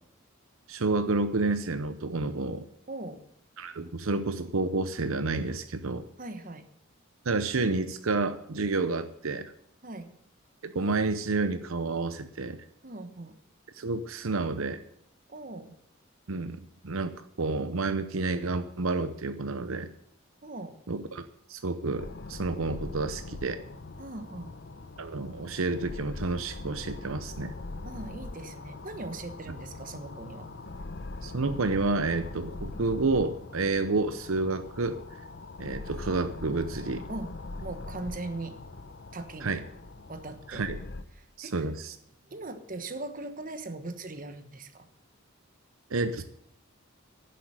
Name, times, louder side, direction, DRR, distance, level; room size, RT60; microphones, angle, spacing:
voice 1, 0.7-2.6 3.6-6.0 7.2-9.5 10.6-12.6 13.8-14.8 16.3-19.9 20.9-23.6 25.0-27.5 31.2-35.0 35.6-37.0 39.4-39.6 40.5-40.8 41.4-41.9 45.9-46.2, right 3 dB, 80° right, 10 dB, 0.8 m, -30 dB
voice 2, 2.9-3.2 6.2-6.7 9.8-10.1 12.8-13.4 15.3-15.8 20.4-20.8 24.0-24.5 27.8-30.5 37.1-37.3 37.6-38.6 39.1-39.6 40.1-40.7 41.1-41.7 42.2-44.9, right 2 dB, 40° right, 9 dB, 1.3 m, -40 dB
sound 1, 22.0-41.0, left 2 dB, 55° left, 0.8 m, -42 dB
11.0 x 7.7 x 9.1 m, 0.73 s
head